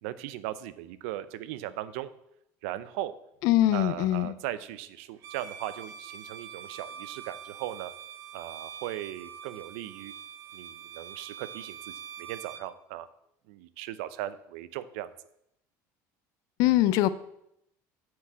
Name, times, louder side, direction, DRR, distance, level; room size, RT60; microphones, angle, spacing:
voice 1, 0.0-2.1 2.6-3.1 3.7-7.9 8.3-10.1 10.5-13.1 13.5-15.1, right 13 dB, 85° right, 14 dB, 0.6 m, -38 dB
voice 2, 3.4-4.3 16.6-17.1, left 14 dB, 60° left, 16 dB, 0.5 m, -22 dB
Bowed string instrument, 5.2-12.7, right 8 dB, 45° right, 0.8 m, -44 dB
8.5 x 4.7 x 7.4 m, 0.78 s
cardioid pair, 155°, 7 cm